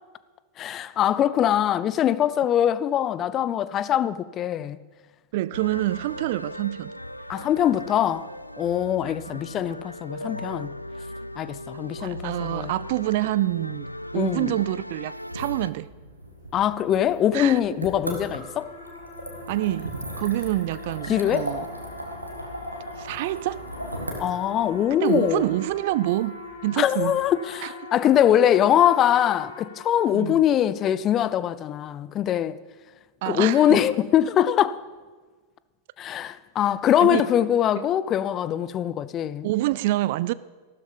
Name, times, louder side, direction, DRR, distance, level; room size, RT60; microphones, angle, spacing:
voice 1, 0.6-4.8 7.3-8.3 8.6-10.7 11.4-12.7 14.1-14.5 16.5-18.7 21.1-21.5 24.2-25.5 26.8-32.6 33.3-34.8 36.0-39.5, left 10 dB, 30° left, 0.6 m, -22 dB
voice 2, 5.3-6.9 9.3-9.4 10.2-10.4 12.0-13.9 14.1-15.9 17.3-17.6 19.5-21.7 23.0-23.7 25.0-27.2 27.6-27.7 30.1-30.4 33.2-33.8 37.0-37.3 37.8-37.9 39.4-40.3, right 16 dB, 50° right, 0.3 m, -27 dB
sound 1, 5.5-15.7, left 1 dB, 90° left, 0.4 m, -38 dB
sound 2, 15.1-27.0, equal, 85° right, 1.8 m, -38 dB
sound 3, 17.8-30.6, left 3 dB, 65° left, 2.6 m, -43 dB
14.0 x 12.5 x 5.2 m
figure-of-eight pair, 90°, 0 cm